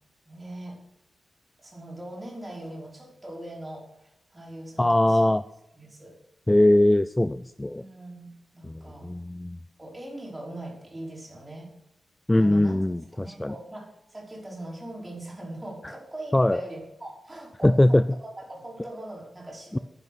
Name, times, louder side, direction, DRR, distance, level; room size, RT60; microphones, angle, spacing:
voice 1, 0.2-0.8 1.6-5.3 5.7-6.1 7.8-9.1 9.8-11.7 12.3-12.8 13.1-19.8, right 1 dB, 20° right, -3 dB, 5.3 m, -41 dB
voice 2, 4.8-5.4 6.5-7.8 8.6-8.7 9.0-9.6 12.3-13.5 16.3-16.6 17.6-18.0 19.7-19.8, left 1 dB, 10° left, 13 dB, 0.4 m, -21 dB
11.0 x 11.0 x 6.3 m, 0.84 s
wide cardioid pair, 115°, 0 cm